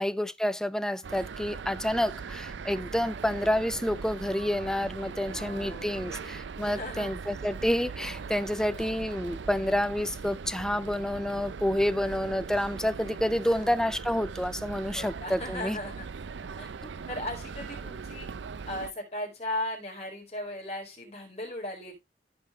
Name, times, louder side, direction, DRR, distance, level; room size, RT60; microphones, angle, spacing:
voice 1, 0.0-15.8, left 1 dB, 5° left, 0.4 m, -29 dB
sound 1, 1.0-18.9, right 5 dB, 80° right, 0.5 m, -40 dB
voice 2, 5.2-6.3 6.6-7.1 13.4-13.8 14.9-16.1 16.6-16.7 17.1-18.3 18.6-22.0, left 1 dB, 35° left, 4.5 m, -37 dB
15.0 x 5.3 x 3.1 m
head